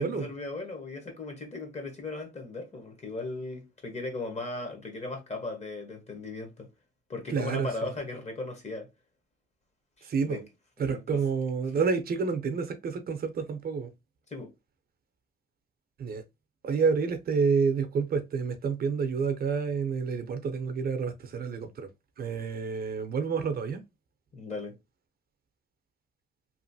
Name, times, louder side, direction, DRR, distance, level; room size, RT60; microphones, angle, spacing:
voice 1, 0.0-6.7 7.1-8.9 10.0-10.4 10.8-11.2 14.3-14.5 24.3-24.7, left 3 dB, 35° left, 1.2 m, -37 dB
voice 2, 7.3-7.7 10.0-10.4 10.8-13.9 16.0-16.2 16.6-21.9 22.2-23.8, right 5 dB, 50° right, 0.6 m, -29 dB
3.0 x 2.5 x 2.6 m
cardioid pair, 90°, 20 cm